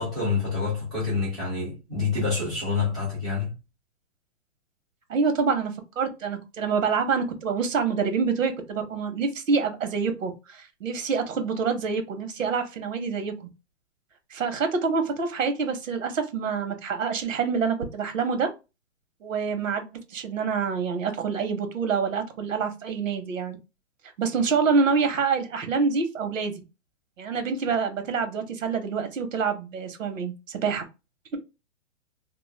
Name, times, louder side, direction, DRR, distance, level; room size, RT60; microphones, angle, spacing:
voice 1, 0.0-3.5, left 4 dB, ahead, 0.3 m, -27 dB
voice 2, 5.1-13.5 14.3-18.5 19.2-19.9 20.1-23.6 24.2-26.5 27.2-30.8, right 5 dB, 85° right, 1.0 m, -26 dB
2.4 x 2.1 x 3.2 m
hypercardioid pair, 150°, 38 cm